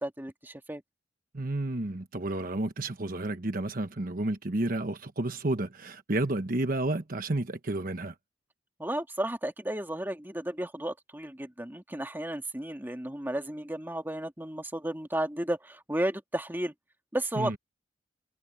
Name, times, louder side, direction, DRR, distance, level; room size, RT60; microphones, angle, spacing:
voice 1, 0.0-0.8 8.8-16.7 17.1-17.6, right 1 dB, 10° right, 1.9 m, -33 dB
voice 2, 1.3-8.1 17.4-17.6, right 2 dB, 50° right, 1.1 m, -31 dB
head